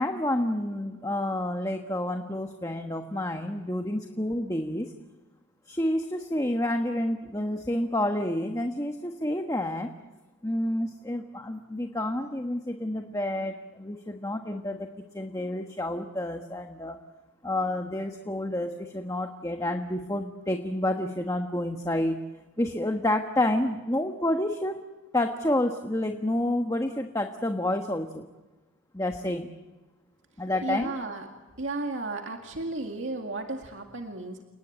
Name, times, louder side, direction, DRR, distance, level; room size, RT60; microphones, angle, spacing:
voice 1, 0.0-4.9 5.7-9.9 10.4-14.9 15.1-17.0 17.4-22.2 22.6-24.8 25.1-28.3 28.9-29.5 30.4-30.9, left 1 dB, 15° left, 4 dB, 1.2 m, -29 dB
voice 2, 30.6-31.3 31.6-34.4, right 2 dB, 70° right, 3 dB, 2.1 m, -34 dB
29.5 x 19.0 x 8.6 m, 1.2 s
head